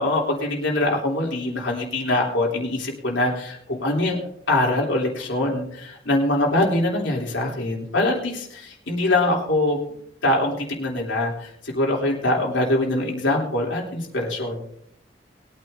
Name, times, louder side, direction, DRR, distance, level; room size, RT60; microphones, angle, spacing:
voice 1, 0.0-4.2 4.5-14.6, left 1 dB, 90° left, -2 dB, 3.2 m, -23 dB
21.5 x 9.3 x 2.7 m, 0.69 s
head